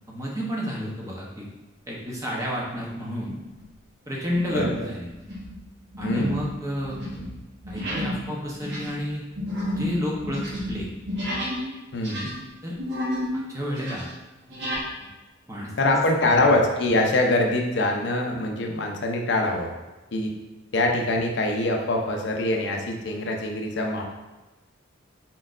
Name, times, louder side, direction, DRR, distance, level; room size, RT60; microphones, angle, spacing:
voice 1, 0.1-1.5 1.9-3.3 4.1-5.1 6.0-7.3 7.7-9.2 9.7-10.4 10.7-10.9 12.6-12.8 13.3-14.1 15.5-16.5, equal, 15° right, -3 dB, 0.7 m, -30 dB
sound 1, 2.6-3.0 3.5-3.7 4.3-4.8 5.1-11.7 11.9-13.4 13.7-14.9, left 1 dB, 65° right, 1.3 m, -31 dB
voice 2, 6.0-6.4 11.9-12.3 15.8-19.7 20.1-20.3 20.7-24.0, left 2 dB, 60° left, 2 dB, 0.5 m, -24 dB
4.3 x 3.8 x 2.4 m, 1.1 s
head